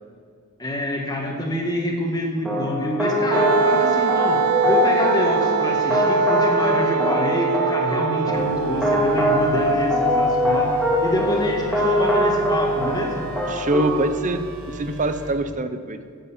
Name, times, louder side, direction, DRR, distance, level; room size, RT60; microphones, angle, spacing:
voice 1, 0.6-10.7 11.0-13.3, left 1 dB, 15° left, 1 dB, 1.5 m, -26 dB
sound 1, 2.4-14.1, left 1 dB, ahead, 2.3 m, -22 dB
Wind instrument woodwind instrument, 3.3-9.3, right 7 dB, 80° right, 0.4 m, -23 dB
sound 2, 8.3-15.3, right 1 dB, 60° right, 3.1 m, -35 dB
voice 2, 13.5-16.0, right 2 dB, 35° right, 10 dB, 0.6 m, -24 dB
10.5 x 7.8 x 7.3 m, 2.2 s
head